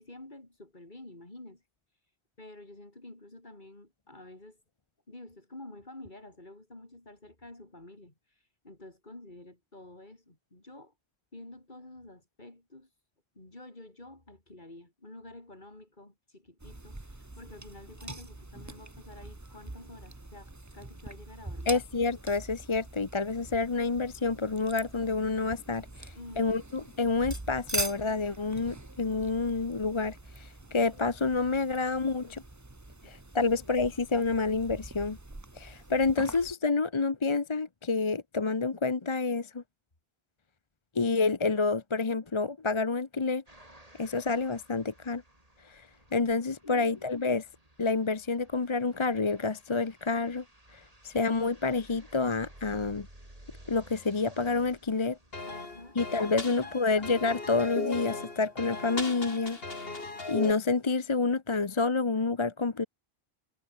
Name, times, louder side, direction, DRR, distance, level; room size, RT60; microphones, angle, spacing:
voice 1, 0.0-1.6 2.4-4.6 5.1-8.1 8.6-10.9 11.3-12.9 13.3-21.8 26.1-26.6 46.6-47.0 55.4-56.0 56.4-56.7, left 2 dB, 50° left, 4.5 m, -49 dB
sound 1, 16.6-36.5, right 2 dB, 15° right, 1.3 m, -43 dB
voice 2, 21.7-32.4 33.0-35.2 35.5-39.6 40.9-43.4 44.0-45.2 45.6-45.9 46.1-47.4 47.8-50.4 50.7-53.1 53.7-55.2 56.0-60.0 60.3-62.9, left 4 dB, 30° left, 0.9 m, -28 dB
sound 2, 43.5-59.6, right 1 dB, 35° right, 6.4 m, -57 dB
sound 3, 55.3-60.5, left 3 dB, 65° left, 3.2 m, -37 dB
omnidirectional pair, 1.1 m